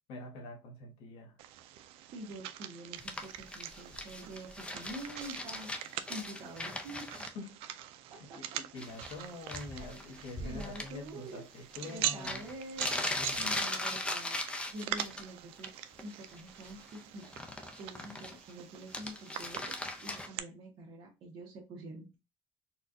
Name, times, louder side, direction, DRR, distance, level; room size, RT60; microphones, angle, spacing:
voice 1, 0.1-1.3 7.3-7.8 8.2-12.4 13.1-13.6, left 2 dB, 85° left, 1.2 m, -45 dB
sound 1, 1.4-20.4, right 12 dB, 90° right, 0.4 m, -43 dB
voice 2, 2.1-7.2 8.3-8.6 10.4-11.4 11.8-13.0 13.4-17.3 17.8-22.2, right 1 dB, 60° right, 1.1 m, -47 dB
sound 2, 3.0-7.3 8.8-9.2 9.5-10.9 11.9-12.0 12.2-15.2 15.6-16.0 16.3-18.5 18.8-20.3, left 2 dB, 10° left, 0.6 m, -39 dB
4.3 x 2.3 x 2.6 m
cardioid pair, 130°, 10 cm